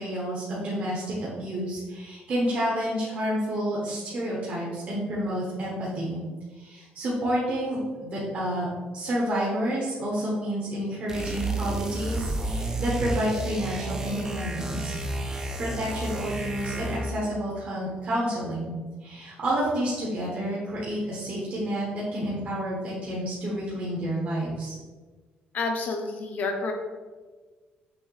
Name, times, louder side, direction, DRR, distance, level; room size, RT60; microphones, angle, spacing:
voice 1, 0.0-6.2 6.5-8.7 8.9-18.7 19.0-24.8, equal, 40° right, -6 dB, 1.0 m, -29 dB
sound 1, 11.1-17.2, right 2 dB, 15° right, 0.4 m, -31 dB
voice 2, 25.5-26.7, left 3 dB, 45° left, 3 dB, 0.7 m, -29 dB
6.2 x 2.8 x 3.1 m, 1.4 s
cardioid pair, 165°, 4 cm